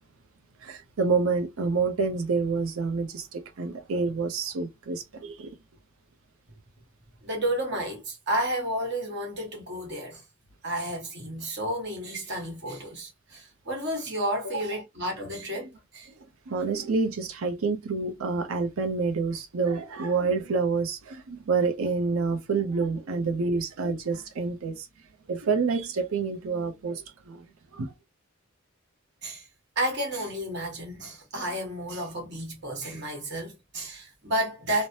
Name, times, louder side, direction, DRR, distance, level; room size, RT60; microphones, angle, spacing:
voice 1, 0.6-5.6 15.6-15.7 16.5-24.9 25.3-27.5 27.7-27.9, right 4 dB, 85° right, 0.5 m, -28 dB
voice 2, 7.2-10.2 10.6-16.1 29.2-29.5 29.7-34.9, right 1 dB, 55° right, 1.3 m, -31 dB
3.1 x 2.0 x 2.7 m
head